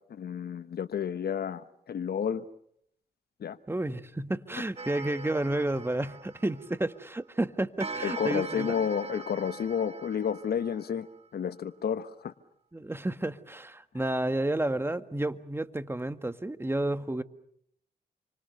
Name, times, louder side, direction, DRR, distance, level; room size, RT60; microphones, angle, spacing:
voice 1, 0.1-2.4 3.4-3.6 8.0-11.1 11.3-12.3, left 7 dB, 70° left, 13 dB, 1.1 m, -31 dB
voice 2, 3.7-8.7 12.7-17.2, right 1 dB, 15° right, 11 dB, 1.7 m, -31 dB
Clock, 4.8-7.0 7.8-11.2, right 4 dB, 35° right, 2.5 m, -41 dB
28.5 x 25.0 x 6.8 m, 0.72 s
cardioid pair, 60°, 17 cm